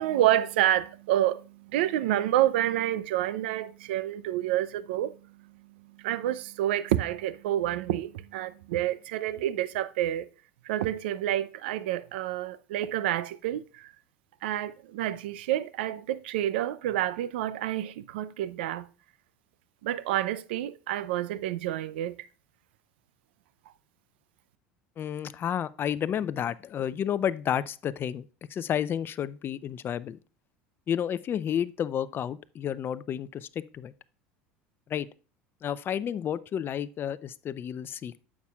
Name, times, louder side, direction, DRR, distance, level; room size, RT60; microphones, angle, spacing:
voice 1, 0.0-1.4 1.7-5.1 6.0-10.3 10.7-13.9 14.4-18.9 19.8-22.2, right 13 dB, 85° right, 0.5 m, -28 dB
voice 2, 25.0-28.2 28.5-30.2 30.9-33.9 34.9-35.1 35.6-38.2, left 9 dB, 40° left, 0.5 m, -31 dB
9.3 x 7.3 x 2.3 m
supercardioid pair, 95°, 6 cm